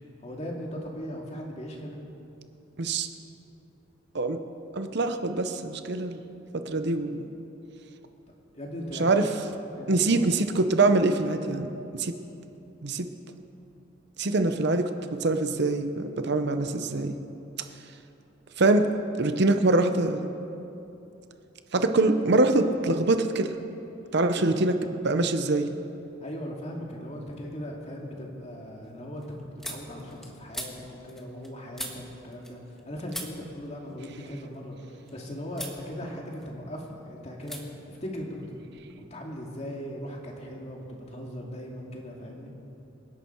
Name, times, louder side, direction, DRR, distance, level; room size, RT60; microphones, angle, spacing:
voice 1, 0.2-2.0 8.5-9.3 9.7-10.2 24.3-24.5 26.2-29.3 29.5-38.7 39.0-42.5, equal, 35° left, -1 dB, 2.4 m, -38 dB
voice 2, 4.7-6.2 6.5-7.3 9.0-9.3 9.9-11.7 12.0-12.1 12.8-13.1 14.2-14.9 15.2-17.2 18.6-18.9 19.2-20.3 21.7-23.5 24.1-24.7 25.0-25.8, right 2 dB, 55° right, 7 dB, 0.8 m, -24 dB
sound 1, 26.9-27.4 27.8-32.8 33.1-35.1 35.5-35.8 36.2-36.9 37.4-37.6 37.9-38.9, equal, ahead, 1.5 m, -43 dB
26.5 x 11.0 x 4.6 m, 2.9 s
head